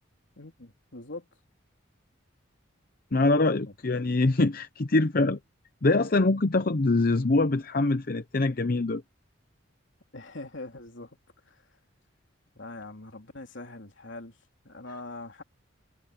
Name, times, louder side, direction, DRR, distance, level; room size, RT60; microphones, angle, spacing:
voice 1, 0.4-1.3 3.6-3.7 10.1-11.2 11.5-11.6 12.5-14.4 14.6-15.4, left 2 dB, 70° left, 3.2 m, -42 dB
voice 2, 3.1-5.4 5.8-9.0, left 2 dB, 50° left, 0.7 m, -24 dB
head